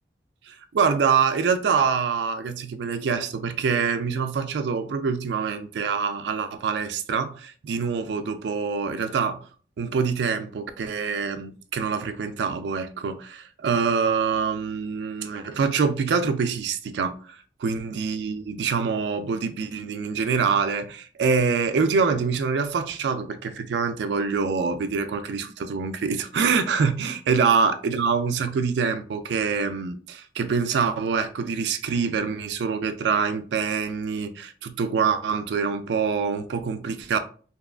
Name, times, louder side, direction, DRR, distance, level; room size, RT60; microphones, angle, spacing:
voice 1, 0.5-9.4 9.8-37.2, right 5 dB, 75° right, 0.3 m, -25 dB
2.8 x 2.3 x 2.2 m
head